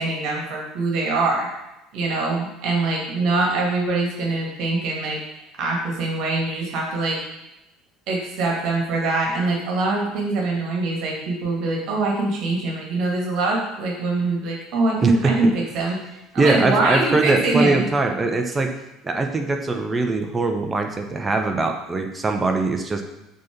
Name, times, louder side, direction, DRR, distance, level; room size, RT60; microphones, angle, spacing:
voice 1, 0.0-1.5 1.9-5.2 5.6-7.2 8.1-16.0 16.3-17.8, right 3 dB, 50° right, -2 dB, 1.9 m, -23 dB
voice 2, 15.0-15.3 16.4-18.7 19.0-23.0, right 3 dB, 20° right, 4 dB, 1.0 m, -22 dB
6.2 x 4.3 x 5.8 m, 0.93 s
figure-of-eight pair, 65°, 0 cm